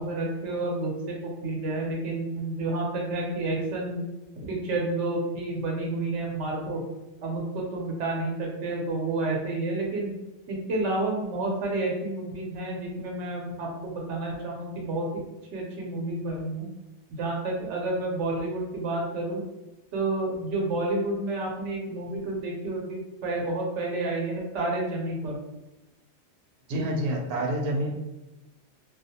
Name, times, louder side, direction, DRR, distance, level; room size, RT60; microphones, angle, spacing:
voice 1, 0.0-4.0 4.3-6.8 7.2-10.2 10.5-15.2 15.5-16.7 17.2-19.4 19.9-25.4, right 2 dB, 90° right, -1 dB, 1.0 m, -30 dB
voice 2, 26.7-27.9, right 1 dB, 60° right, 0 dB, 0.7 m, -27 dB
2.4 x 2.2 x 2.8 m, 1.0 s
omnidirectional pair, 1.2 m